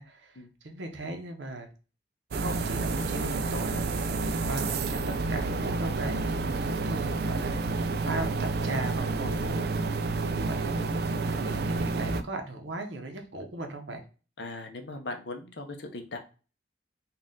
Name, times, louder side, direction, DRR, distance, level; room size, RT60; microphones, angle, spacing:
voice 1, 0.0-1.7 2.3-4.1 4.4-9.8 10.4-10.7 11.2-14.0, right 2 dB, 70° right, 5 dB, 0.8 m, -37 dB
sound 1, 2.3-12.2, right 3 dB, 55° right, 0.4 m, -29 dB
voice 2, 14.4-16.2, left 2 dB, 65° left, 5 dB, 0.7 m, -39 dB
4.2 x 2.4 x 3.6 m, 0.35 s
head